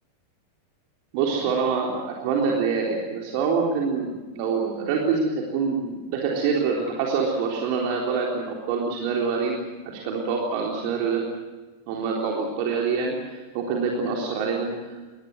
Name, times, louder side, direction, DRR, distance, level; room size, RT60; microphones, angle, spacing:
voice 1, 1.1-9.6 9.8-11.2 11.9-15.0, right 5 dB, 45° right, -1 dB, 3.7 m, -25 dB
24.0 x 19.5 x 8.0 m, 1.3 s
figure-of-eight pair, 90°, 0 cm